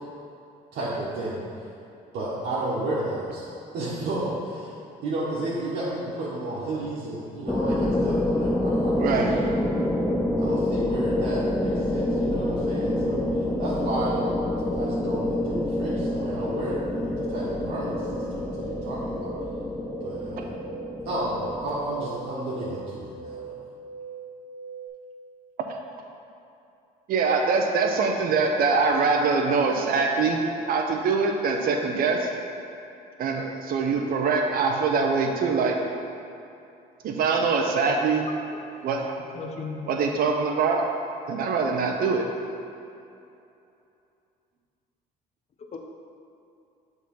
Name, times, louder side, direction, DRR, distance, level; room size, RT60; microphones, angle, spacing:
voice 1, 0.7-1.4 2.1-4.7 5.0-9.5 10.4-13.2 13.6-14.4 14.7-19.3 20.0-20.5 21.0-23.6, right 1 dB, 75° right, -9 dB, 1.5 m, -32 dB
sound 1, 7.5-22.5, left 1 dB, 10° left, 0.4 m, -27 dB
sound 2, 9.0-24.9, right 5 dB, 60° left, 1.6 m, -41 dB
voice 2, 9.0-9.3 27.1-30.4 30.7-32.3 33.2-35.8 37.0-38.3 38.8-39.1 39.9-40.8 41.3-42.2, right 4 dB, 60° right, 2 dB, 0.9 m, -23 dB
voice 3, 39.3-39.9 40.8-40.9 45.6-45.8, left 4 dB, 40° left, 3 dB, 0.9 m, -36 dB
7.3 x 4.0 x 5.6 m, 2.7 s
cardioid pair, 110°, 17 cm